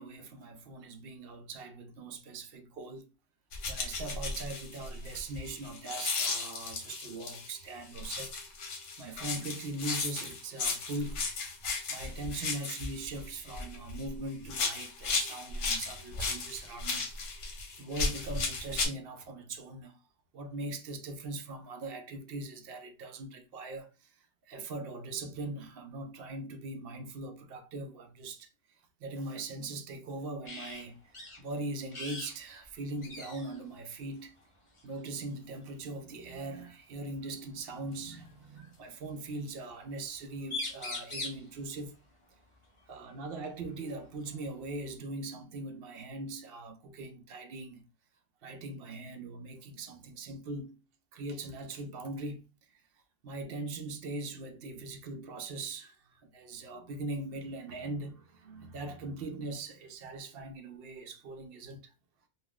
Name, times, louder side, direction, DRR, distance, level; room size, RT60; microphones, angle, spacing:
voice 1, 0.0-3.1 3.7-8.4 9.0-11.2 11.9-17.1 17.4-17.5 17.8-20.0 20.3-24.1 24.5-28.5 29.0-31.0 31.4-34.4 34.8-42.0 42.9-47.8 48.4-50.8 51.1-52.4 52.7-52.8 53.2-61.9, right 2 dB, 60° right, 0.6 m, -41 dB
sound 1, 3.5-7.5 8.0-14.1 14.4-18.9, left 4 dB, 70° left, 1.0 m, -35 dB
sound 2, 30.4-30.8 31.1-31.4 31.9-32.4 32.6-32.7 33.0-33.6 34.8-35.0 36.7-36.8 37.9-38.8 40.1-40.2 40.4-41.5 43.4-43.5 43.9-44.9, left 2 dB, 35° left, 0.6 m, -41 dB
3.4 x 2.3 x 2.2 m
omnidirectional pair, 1.3 m